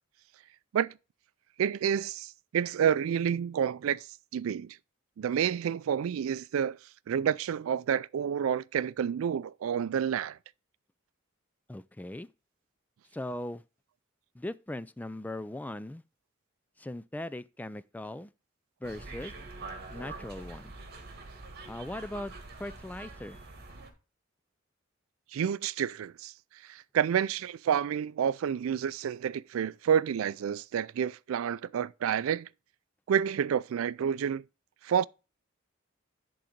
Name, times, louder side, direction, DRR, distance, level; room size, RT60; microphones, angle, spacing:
voice 1, 1.6-4.1 4.3-4.8 5.2-6.8 7.1-10.4 25.3-26.3 26.7-32.5 33.1-34.4 34.8-35.1, right 8 dB, 90° right, 0.3 m, -29 dB
voice 2, 11.7-12.3 13.1-13.6 14.3-16.0 16.8-18.3 18.8-19.3 19.9-20.7 21.7-22.3 22.6-23.4, left 1 dB, 10° left, 0.3 m, -39 dB
sound 1, 18.8-23.9, right 3 dB, 50° right, 1.6 m, -45 dB
10.5 x 4.0 x 5.1 m
head